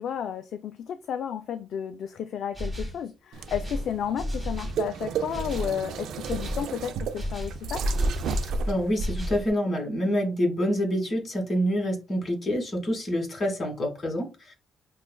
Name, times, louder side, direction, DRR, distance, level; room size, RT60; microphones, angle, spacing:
voice 1, 0.0-7.8, left 8 dB, 70° left, 0.3 m, -32 dB
sound 1, 2.5-3.0 3.5-4.8 5.3-5.8 6.2-6.7 7.2-8.5 9.0-9.5, equal, 10° right, 1.1 m, -33 dB
sound 2, 3.3-9.5, right 4 dB, 80° right, 0.4 m, -32 dB
voice 2, 8.7-14.5, equal, 40° left, 1.6 m, -27 dB
5.4 x 2.3 x 2.2 m
cardioid pair, 90°, 0 cm